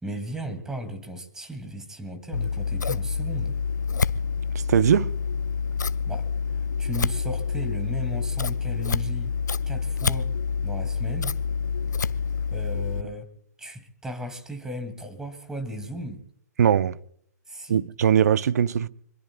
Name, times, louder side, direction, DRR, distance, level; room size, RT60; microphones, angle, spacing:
voice 1, 0.0-3.6 6.1-6.2 6.8-9.3 9.7-10.3 10.6-11.4 12.5-13.3 13.6-16.2 17.5-17.8, equal, 5° right, 2.3 m, -35 dB
Scissors, 2.3-13.0, left 5 dB, 90° left, 0.6 m, -27 dB
voice 2, 4.7-5.1 16.6-17.0 17.7-18.9, right 8 dB, 65° right, 0.7 m, -20 dB
26.5 x 22.0 x 2.3 m
hypercardioid pair, 130°, 9 cm